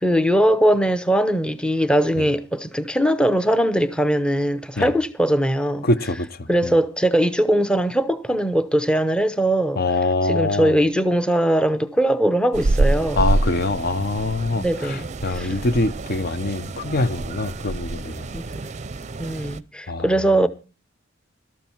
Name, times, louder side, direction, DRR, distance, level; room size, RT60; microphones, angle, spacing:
voice 1, 0.0-5.9 6.5-9.8 10.2-13.3 14.6-15.5 18.3-18.4 19.2-20.5, right 1 dB, 5° left, 0.7 m, -20 dB
voice 2, 5.8-6.4 6.6-6.7 9.8-10.7 13.2-18.2 19.9-20.1, left 2 dB, 50° left, 0.7 m, -24 dB
sound 1, 12.5-19.6, right 2 dB, 35° right, 0.5 m, -26 dB
13.0 x 12.5 x 4.5 m
head